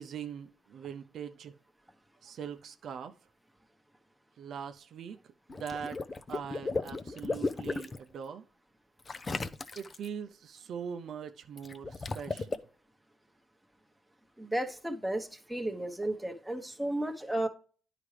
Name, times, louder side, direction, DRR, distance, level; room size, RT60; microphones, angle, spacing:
voice 1, 0.0-1.6 2.2-3.1 4.4-6.0 6.3-8.4 9.8-12.6, right 7 dB, 65° right, 0.5 m, -42 dB
Water / Liquid, 5.5-8.0 9.1-10.1 11.6-12.6, left 3 dB, 30° left, 0.5 m, -35 dB
voice 2, 14.4-17.5, right 1 dB, 5° right, 1.0 m, -33 dB
9.7 x 4.9 x 3.2 m
cardioid pair, 90°, 0 cm